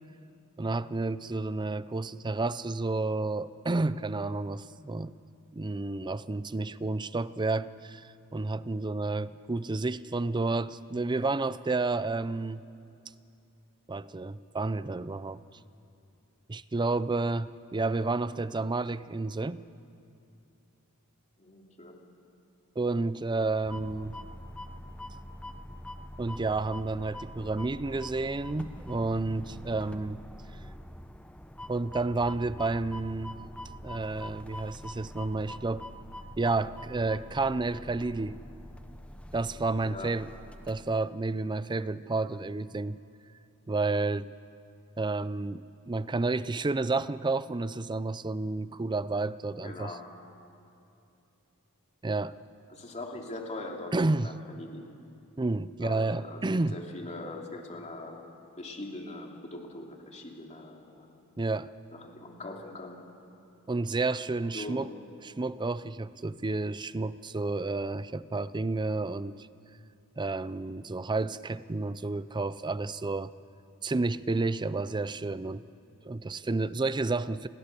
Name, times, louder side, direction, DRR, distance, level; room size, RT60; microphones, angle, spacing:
voice 1, 0.6-5.1 5.5-12.6 13.9-15.4 16.5-19.6 22.8-24.2 26.2-30.2 31.7-33.4 33.8-35.9 36.4-38.4 39.3-40.3 40.6-43.0 43.7-44.3 45.0-49.9 52.0-52.4 53.9-54.3 55.4-56.8 61.4-61.7 63.7-64.9 65.2-69.5 70.2-73.3 73.8-75.6 76.0-77.5, right 3 dB, 20° right, 16 dB, 0.5 m, -30 dB
voice 2, 21.4-22.0 39.8-40.1 49.6-50.0 52.7-54.9 55.8-58.3 58.6-61.2 61.9-63.0 64.5-64.9, left 2 dB, 30° left, 0 dB, 3.0 m, -42 dB
sound 1, 23.6-41.1, equal, 5° left, 0.8 m, -44 dB
29.5 x 21.0 x 6.8 m, 2.6 s
head